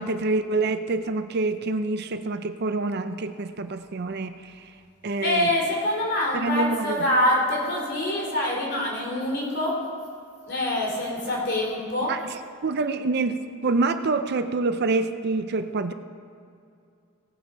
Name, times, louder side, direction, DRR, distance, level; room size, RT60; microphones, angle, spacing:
voice 1, 0.0-4.7 5.0-5.5 6.3-7.1 12.1-12.2 12.6-15.9, right 3 dB, 50° right, 9 dB, 0.5 m, -26 dB
voice 2, 5.2-9.8 10.5-12.1, left 1 dB, 50° left, -4 dB, 3.5 m, -25 dB
18.0 x 7.3 x 5.0 m, 2.4 s
head